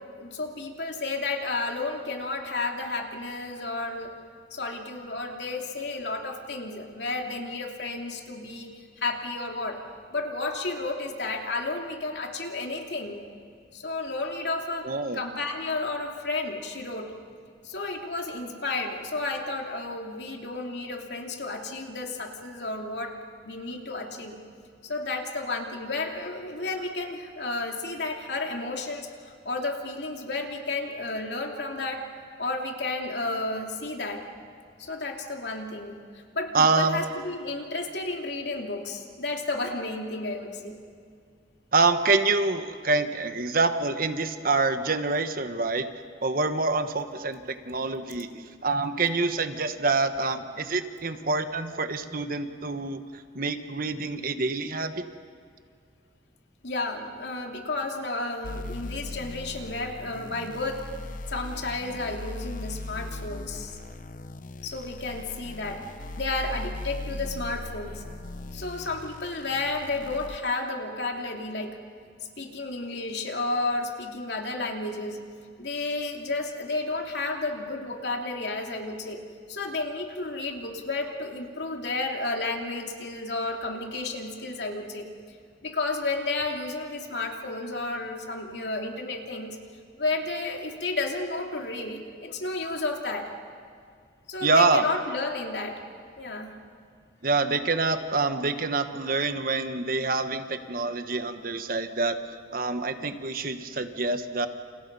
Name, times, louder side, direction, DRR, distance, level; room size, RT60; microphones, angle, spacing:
voice 1, 0.1-4.1 4.5-9.8 10.1-13.2 13.7-17.1 17.6-23.2 23.4-24.4 24.8-32.0 32.4-34.3 34.8-36.0 36.3-40.8 56.6-60.8 61.3-63.8 64.6-65.8 66.2-68.0 68.5-71.8 72.4-75.2 75.6-79.2 79.5-85.1 85.6-89.6 90.0-93.3 94.3-95.8 96.2-96.5, left 3 dB, 65° left, 2 dB, 3.0 m, -32 dB
voice 2, 14.8-15.2 36.5-37.0 41.7-45.9 46.2-53.0 53.3-55.1 94.4-94.8 97.2-104.5, right 3 dB, 50° right, 8 dB, 1.3 m, -26 dB
sound 1, 58.4-70.4, left 2 dB, 45° left, 0.6 m, -39 dB
29.5 x 29.5 x 5.5 m, 2.2 s
head